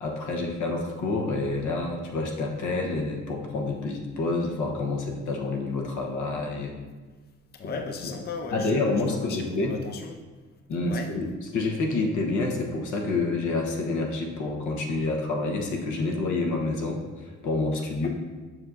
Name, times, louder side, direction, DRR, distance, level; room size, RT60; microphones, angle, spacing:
voice 1, 0.0-6.7 7.6-8.1 8.5-9.8 10.7-11.3 11.5-18.1, left 3 dB, 75° left, 1 dB, 1.2 m, -28 dB
voice 2, 7.5-10.2 10.9-11.1, left 4 dB, 35° left, 4 dB, 0.5 m, -37 dB
7.3 x 5.8 x 2.6 m, 1.4 s
cardioid pair, 90°, 30 cm